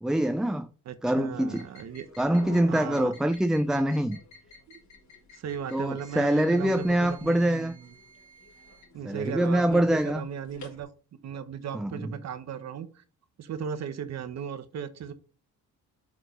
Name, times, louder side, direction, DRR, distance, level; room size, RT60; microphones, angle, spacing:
voice 1, 0.0-0.7 1.0-1.7 2.2-4.2 5.7-7.7 9.0-10.3 11.7-12.1, right 1 dB, ahead, 0.4 m, -25 dB
voice 2, 0.9-2.1 2.7-3.1 4.7-4.8 5.3-7.9 8.9-10.9 11.2-13.0 13.4-15.1, right 8 dB, 60° right, 1.0 m, -36 dB
sound 1, 1.5-10.8, left 2 dB, 65° left, 3.2 m, -50 dB
5.9 x 4.7 x 5.2 m
cardioid pair, 90°, 30 cm